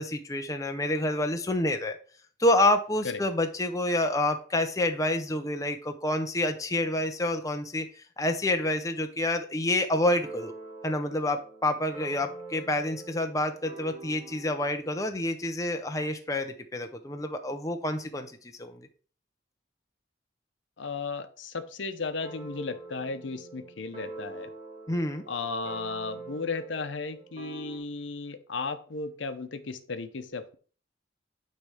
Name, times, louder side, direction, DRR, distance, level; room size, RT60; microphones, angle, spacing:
voice 1, 0.0-2.0 2.4-7.9 8.2-10.5 10.8-18.9 24.9-25.2, left 1 dB, 15° left, 5 dB, 0.6 m, -28 dB
sound 1, 10.0-14.7 22.2-27.8, right 3 dB, 30° right, 1.4 m, -45 dB
voice 2, 20.8-24.5 25.3-30.6, left 4 dB, 80° left, 9 dB, 0.7 m, -35 dB
9.3 x 3.3 x 4.9 m, 0.42 s
head